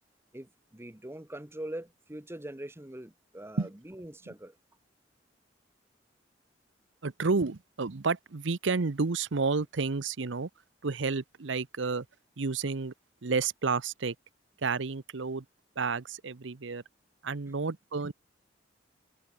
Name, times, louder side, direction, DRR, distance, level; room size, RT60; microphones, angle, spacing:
voice 1, 0.3-4.6, right 1 dB, 15° right, 1.2 m, -42 dB
voice 2, 7.0-10.5 10.8-12.1 12.4-12.9 13.2-14.1 14.6-15.4 15.8-16.8 17.2-18.1, right 4 dB, 80° right, 0.8 m, -30 dB
open air
head